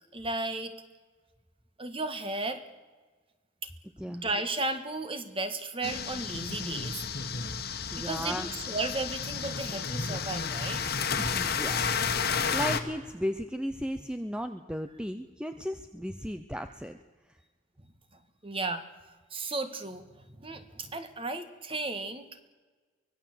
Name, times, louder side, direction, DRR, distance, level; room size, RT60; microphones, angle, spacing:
voice 1, 0.1-0.7 1.8-2.6 4.0-7.0 8.0-10.8 18.4-18.8 19.3-22.4, right 2 dB, 25° right, 9 dB, 1.6 m, -34 dB
sound 1, 5.8-12.8, left 5 dB, 50° left, 1.7 m, -31 dB
voice 2, 7.9-8.5 11.2-12.0 12.5-17.0, equal, 5° right, 8 dB, 0.7 m, -35 dB
24.0 x 18.5 x 7.9 m, 1.3 s
head